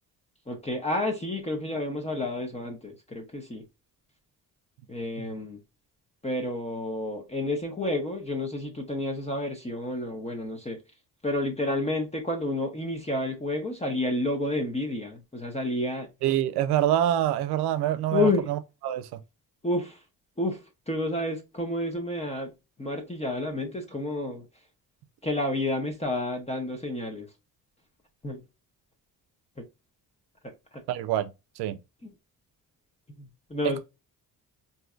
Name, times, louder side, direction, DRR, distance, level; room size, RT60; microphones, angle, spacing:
voice 1, 0.5-3.6 4.9-5.6 6.2-10.8 11.2-16.1 18.1-18.4 19.6-20.0 20.4-22.5 22.8-24.4 25.2-27.3 28.2-28.4 30.7-30.8 32.0-32.1 33.2-33.8, left 2 dB, 15° left, 0.9 m, -30 dB
voice 2, 16.2-18.6 18.8-19.2 30.9-31.8, right 12 dB, 85° right, 0.6 m, -26 dB
3.7 x 2.7 x 2.3 m
cardioid pair, 80°, 38 cm